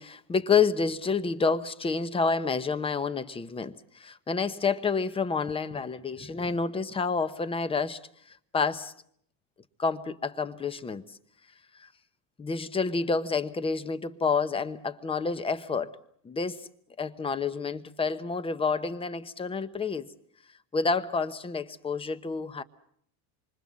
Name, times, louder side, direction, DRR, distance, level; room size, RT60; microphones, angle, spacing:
voice 1, 0.0-8.0 8.3-8.9 9.8-11.1 11.8-11.9 12.4-15.9 16.2-16.7 17.0-20.1 20.7-22.6, left 5 dB, 15° left, 1.0 m, -29 dB
27.5 x 25.0 x 7.5 m
cardioid pair, 150°, 37 cm